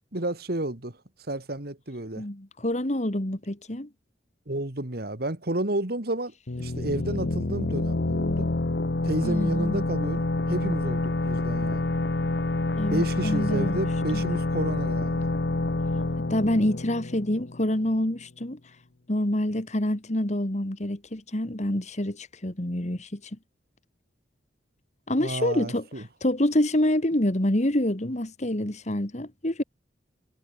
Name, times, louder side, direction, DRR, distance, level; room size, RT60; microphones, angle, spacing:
voice 1, 0.1-1.0 1.3-2.3 4.5-8.5 9.0-11.8 12.9-15.3 25.2-26.0, right 1 dB, 60° right, 2.3 m, -31 dB
voice 2, 2.2-3.9 9.2-9.9 12.8-13.8 14.1-14.2 16.2-18.6 19.1-23.2 25.1-25.9 26.2-29.6, left 1 dB, 40° left, 2.1 m, -27 dB
sound 1, 6.5-18.0, left 2 dB, 65° left, 1.0 m, -27 dB
head